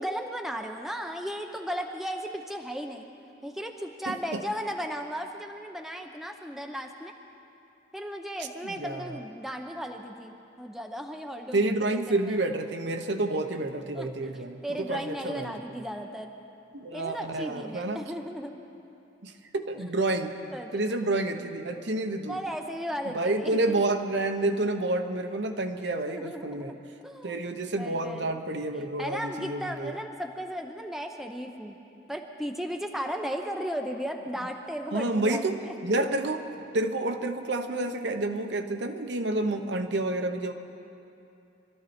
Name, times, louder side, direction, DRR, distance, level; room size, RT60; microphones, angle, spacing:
voice 1, 0.0-3.1 3.4-7.1 7.9-11.7 12.1-12.4 13.9-14.1 14.6-16.3 16.9-18.5 20.5-20.7 22.3-23.8 26.0-26.8 27.0-27.4 27.8-28.4 29.0-31.8 32.1-36.1, equal, ahead, 3 dB, 0.7 m, -35 dB
voice 2, 4.1-4.4 8.6-9.2 11.5-15.6 16.7-18.0 19.2-20.3 20.7-22.4 23.1-26.7 27.2-29.9 34.9-40.5, right 2 dB, 60° right, 6 dB, 1.0 m, -29 dB
24.5 x 13.0 x 4.4 m, 2.7 s
head